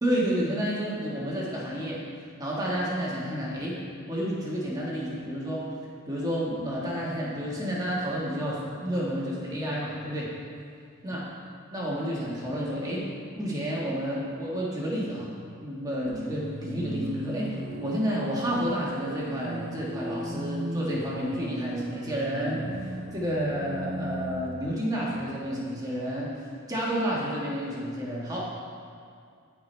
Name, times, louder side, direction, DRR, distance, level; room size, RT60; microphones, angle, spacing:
voice 1, 0.0-2.0 2.4-3.8 4.1-5.7 6.1-10.3 11.0-11.2 11.7-13.1 13.3-15.3 15.6-22.6 23.1-26.3 26.7-28.4, equal, 20° right, -6 dB, 1.6 m, -30 dB
sound 1, 16.0-25.9, right 1 dB, 85° right, 1.2 m, -37 dB
13.5 x 4.9 x 3.3 m, 2.3 s
head